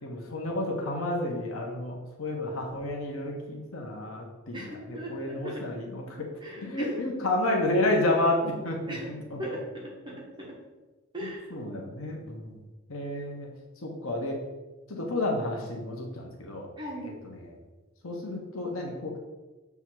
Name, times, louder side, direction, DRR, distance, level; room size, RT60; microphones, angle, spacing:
voice 1, 0.0-6.3 6.6-9.4 11.2-12.6 12.9-13.5 13.8-14.4 14.9-16.7 17.2-17.6 18.0-19.1, left 1 dB, 85° left, 0 dB, 1.2 m, -31 dB
voice 2, 4.5-5.6 6.4-6.8 8.9-9.1 9.4-10.5 11.1-11.4 16.8-17.2, equal, 25° right, -4 dB, 1.5 m, -38 dB
7.2 x 3.5 x 6.2 m, 1.2 s
head